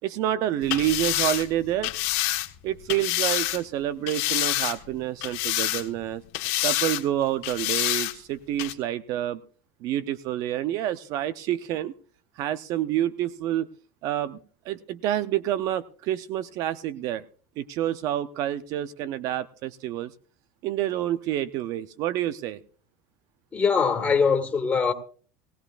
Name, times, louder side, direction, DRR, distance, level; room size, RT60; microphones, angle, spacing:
voice 1, 0.0-1.9 2.6-6.2 6.6-9.4 9.8-11.9 12.4-13.7 14.0-14.4 14.6-17.2 17.6-20.1 20.6-22.6, right 12 dB, 55° right, 0.6 m, -28 dB
sound 1, 0.6-3.6 4.1-4.9 5.2-6.0 6.3-7.0 7.4-8.1 8.6-8.7, left 16 dB, 65° left, 1.4 m, -27 dB
voice 2, 23.5-24.9, left 5 dB, 20° left, 2.1 m, -22 dB
19.5 x 16.5 x 2.5 m
supercardioid pair, 115°, 7 cm